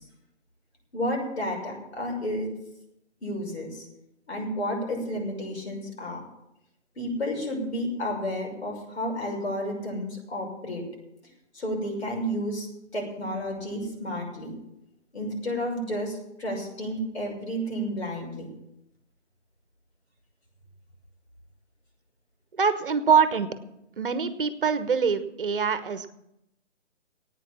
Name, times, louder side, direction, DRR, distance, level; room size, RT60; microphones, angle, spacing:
voice 1, 0.9-2.5 3.2-3.9 4.3-6.2 7.0-10.9 11.5-12.7 12.9-14.6 15.1-18.5, equal, 65° left, 0 dB, 6.3 m, -31 dB
voice 2, 22.5-23.5 24.0-26.1, right 6 dB, 50° right, 11 dB, 1.1 m, -24 dB
15.0 x 9.3 x 7.1 m, 0.85 s
figure-of-eight pair, 145°, 36 cm